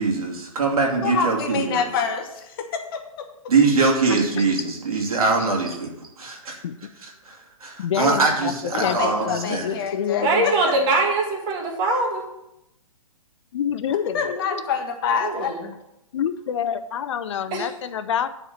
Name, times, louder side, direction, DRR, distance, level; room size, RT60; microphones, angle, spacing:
voice 1, 0.0-1.9 3.5-5.9 6.2-6.5 7.0-9.8, right 4 dB, 85° right, 0 dB, 2.6 m, -22 dB
voice 2, 1.0-3.0 8.7-10.5 14.1-15.5, left 6 dB, 40° left, 4 dB, 1.2 m, -26 dB
voice 3, 4.1-4.5 6.6-6.7 7.8-10.7 13.5-14.4 16.1-18.3, left 8 dB, 55° left, 11 dB, 0.6 m, -27 dB
voice 4, 10.2-12.2 15.2-15.6 17.5-17.7, right 2 dB, 25° right, 1 dB, 1.8 m, -22 dB
9.8 x 4.4 x 6.5 m, 0.87 s
hypercardioid pair, 150°, 18 cm